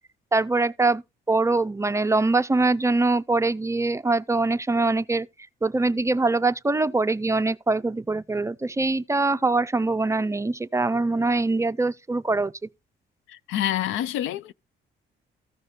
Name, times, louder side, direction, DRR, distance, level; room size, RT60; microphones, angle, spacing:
voice 1, 0.3-1.0 1.3-5.3 5.6-12.5, right 3 dB, 15° right, 0.4 m, -23 dB
voice 2, 13.3-14.5, left 12 dB, 90° left, 0.5 m, -27 dB
14.5 x 5.6 x 3.2 m
cardioid pair, 90°, 20 cm